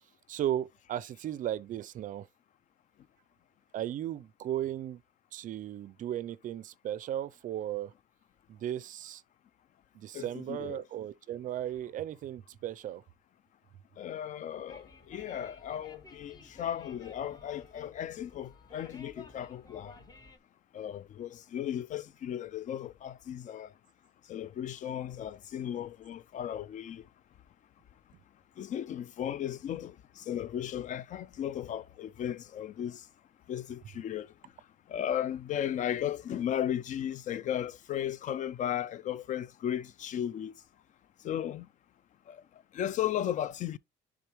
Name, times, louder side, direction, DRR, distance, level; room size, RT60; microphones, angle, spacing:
voice 1, 0.3-2.3 3.7-5.0 5.3-7.9 8.5-9.2 9.9-13.0, right 11 dB, 50° right, 0.4 m, -36 dB
voice 2, 10.1-10.8 14.0-19.9 20.7-23.7 24.3-27.0 28.6-33.0 33.5-34.3 34.9-40.5 41.2-41.7 42.3-42.4 42.7-43.8, left 10 dB, 50° left, 0.4 m, -35 dB
sound 1, 14.7-20.4, left 3 dB, 25° left, 0.9 m, -55 dB
10.5 x 3.7 x 3.0 m
cardioid pair, 110°, 17 cm